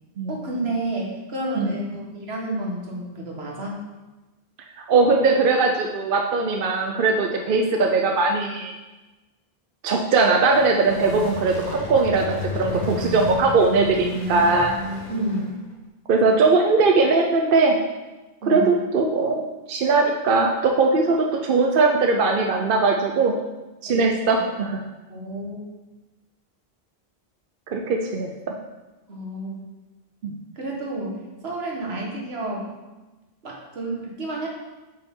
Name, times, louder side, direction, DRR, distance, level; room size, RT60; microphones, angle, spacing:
voice 1, 0.3-3.8 15.1-15.6 18.4-18.7 23.9-24.4 25.1-25.7 29.1-29.6 30.6-31.2 31.4-32.7 33.4-34.5, right 1 dB, 80° right, -2 dB, 1.7 m, -30 dB
voice 2, 4.7-8.7 9.8-14.8 16.1-17.8 18.5-23.3 23.8-24.8 27.7-28.3 30.2-30.3, right 3 dB, 60° right, 2 dB, 0.8 m, -20 dB
sound 1, 10.4-15.7, left 1 dB, 45° left, 1.3 m, -32 dB
8.4 x 5.5 x 3.7 m, 1.1 s
omnidirectional pair, 1.0 m